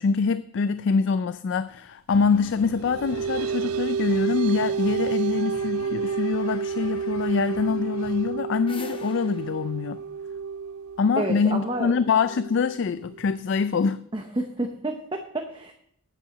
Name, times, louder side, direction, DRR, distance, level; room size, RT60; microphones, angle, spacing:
voice 1, 0.0-10.0 11.0-14.0, left 5 dB, 55° left, 14 dB, 0.3 m, -24 dB
sound 1, 2.1-8.4, left 4 dB, 85° left, 0.9 m, -45 dB
sound 2, 2.6-13.5, right 6 dB, 80° right, 0.3 m, -30 dB
sound 3, 8.2-11.3, left 3 dB, 25° left, 0.8 m, -45 dB
voice 2, 11.2-11.9 14.1-15.7, right 2 dB, 25° right, 4 dB, 0.7 m, -30 dB
9.5 x 8.4 x 6.5 m, 0.70 s
head